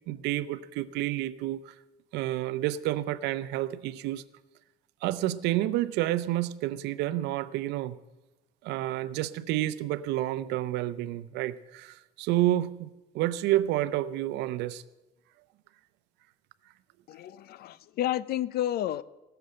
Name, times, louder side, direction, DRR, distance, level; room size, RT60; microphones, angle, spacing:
voice 1, 0.1-1.7 2.1-4.2 5.0-8.0 8.6-12.9 13.1-14.8, right 14 dB, 90° right, 15 dB, 0.6 m, -29 dB
voice 2, 17.1-19.0, left 12 dB, 65° left, 19 dB, 0.5 m, -31 dB
17.0 x 6.9 x 7.6 m, 1.0 s
cardioid pair, 110°, 17 cm